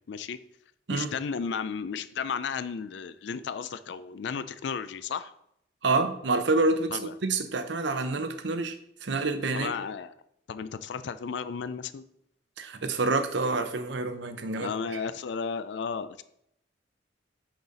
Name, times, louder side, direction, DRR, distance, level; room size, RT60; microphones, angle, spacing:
voice 1, 0.1-0.4 0.9-5.3 6.9-7.1 9.5-10.1 10.5-12.0 14.6-16.2, left 6 dB, 60° left, 13 dB, 0.4 m, -34 dB
voice 2, 5.8-8.8 9.0-9.7 12.6-15.0, right 3 dB, 65° right, 10 dB, 0.7 m, -28 dB
10.0 x 4.0 x 4.0 m, 0.75 s
head